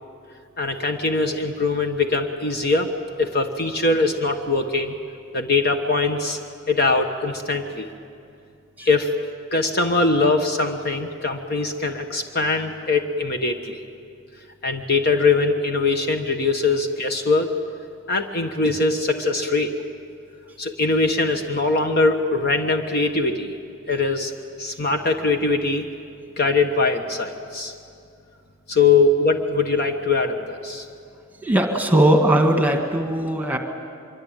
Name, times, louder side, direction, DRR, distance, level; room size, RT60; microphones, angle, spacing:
voice 1, 0.6-2.9 3.2-4.9 5.3-6.4 6.7-7.9 8.8-9.1 9.5-13.8 14.6-17.5 18.1-19.7 20.6-23.6 23.9-24.3 24.6-25.8 26.4-27.7 28.7-30.9, left 3 dB, 45° left, 5 dB, 1.3 m, -22 dB
voice 2, 31.4-33.6, right 1 dB, 10° right, 3 dB, 1.7 m, -19 dB
25.0 x 24.0 x 9.0 m, 2.5 s
head